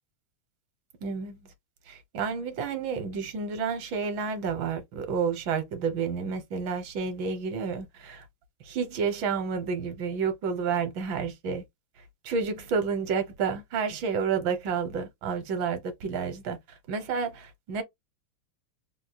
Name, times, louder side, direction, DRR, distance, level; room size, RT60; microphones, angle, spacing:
voice 1, 1.0-1.4 1.9-8.3 8.6-11.6 12.2-16.6 16.9-17.8, right 5 dB, 65° right, 1.5 m, -30 dB
3.8 x 2.3 x 2.7 m
omnidirectional pair, 2.4 m